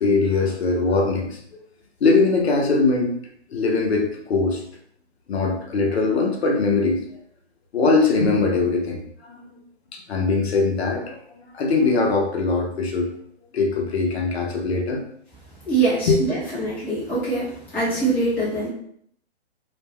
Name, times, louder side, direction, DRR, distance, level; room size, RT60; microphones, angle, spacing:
voice 1, 0.0-1.3 2.0-3.1 3.5-4.6 5.3-7.0 7.7-9.6 9.9-13.1 13.5-15.0 16.1-16.2, left 3 dB, 65° left, 1 dB, 0.8 m, -21 dB
voice 2, 15.7-17.5 17.7-18.7, right 3 dB, 5° left, -11 dB, 0.6 m, -23 dB
2.4 x 2.2 x 3.2 m, 0.66 s
hypercardioid pair, 150°, 34 cm